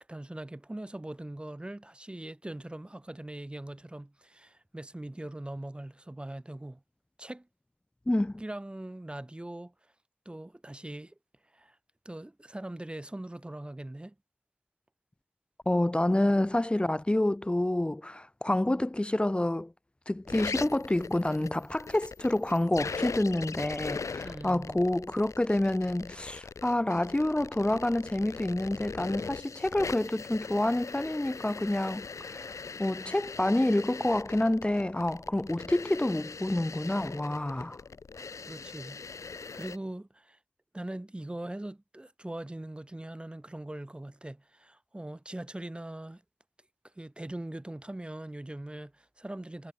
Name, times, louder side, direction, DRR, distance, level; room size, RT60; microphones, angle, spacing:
voice 1, 0.1-6.8 7.2-7.5 8.4-9.7 10.2-11.1 11.5-11.8 12.0-14.1 24.2-24.8 38.5-39.0 39.5-40.4 40.7-46.2 47.0-49.7, right 1 dB, 20° right, 2.8 m, -41 dB
voice 2, 8.1-8.4 15.7-19.7 20.1-32.4 32.8-37.8, left 1 dB, 20° left, 2.6 m, -28 dB
sound 1, 20.3-39.8, left 5 dB, 75° left, 1.6 m, -41 dB
wide cardioid pair, 65°, 5 cm